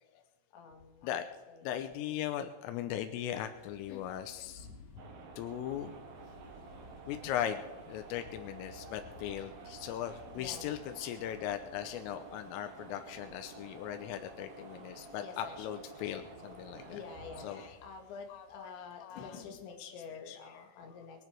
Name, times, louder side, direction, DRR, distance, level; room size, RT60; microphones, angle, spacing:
voice 1, 0.5-2.0 3.9-4.0 10.3-10.7 15.2-15.9 16.9-21.2, left 6 dB, 70° left, 3 dB, 4.0 m, -48 dB
voice 2, 1.6-4.7 5.4-5.9 7.1-7.6 7.9-17.0 17.4-17.7 18.3-18.4 19.0-19.2 20.3-20.4, left 10 dB, 90° left, 7 dB, 3.5 m, -38 dB
sound 1, 3.5-18.8, left 3 dB, 50° left, 4.2 m, -57 dB
sound 2, 5.0-17.7, right 4 dB, 70° right, 1.5 m, -51 dB
22.5 x 9.8 x 4.6 m, 1.2 s
omnidirectional pair, 5.8 m